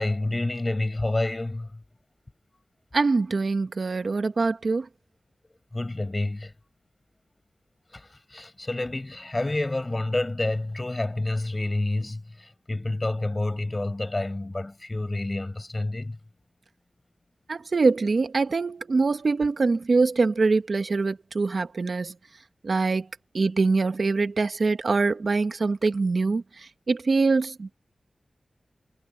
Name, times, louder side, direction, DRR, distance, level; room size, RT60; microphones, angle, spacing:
voice 1, 0.0-1.8 5.7-6.5 7.9-16.2, left 2 dB, 25° left, 6.1 m, -29 dB
voice 2, 2.9-4.9 17.5-22.1 22.6-23.1 23.3-27.7, right 3 dB, 60° right, 1.3 m, -24 dB
wide cardioid pair, 105°, 0 cm